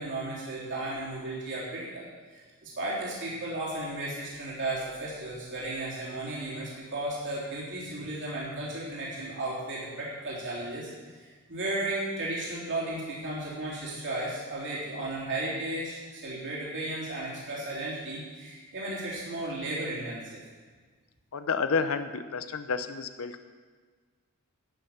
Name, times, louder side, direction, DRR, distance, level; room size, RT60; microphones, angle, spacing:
voice 1, 0.0-2.1 2.3-10.9 11.2-20.4, right 2 dB, 55° right, -7 dB, 3.5 m, -34 dB
voice 2, 21.3-23.4, left 5 dB, 70° left, 10 dB, 0.6 m, -30 dB
12.0 x 9.2 x 5.8 m, 1.5 s
head